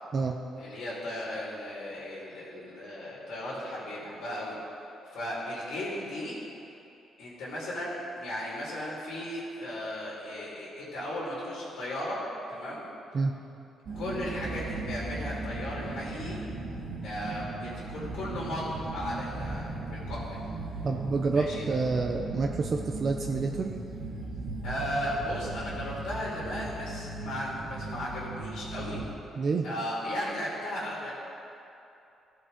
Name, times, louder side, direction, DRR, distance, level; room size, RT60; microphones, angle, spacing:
voice 1, 0.6-4.6 5.1-6.4 7.2-12.8 13.9-16.4 17.0-20.3 21.3-21.6 24.6-29.0 29.6-31.1, left 1 dB, 75° left, -8 dB, 2.4 m, -36 dB
sound 1, 13.9-29.1, right 2 dB, 65° right, 1.6 m, -37 dB
voice 2, 20.8-23.7 29.4-29.7, right 4 dB, 45° right, 3 dB, 0.5 m, -28 dB
13.5 x 4.8 x 5.0 m, 2.8 s
cardioid pair, 90°, 0 cm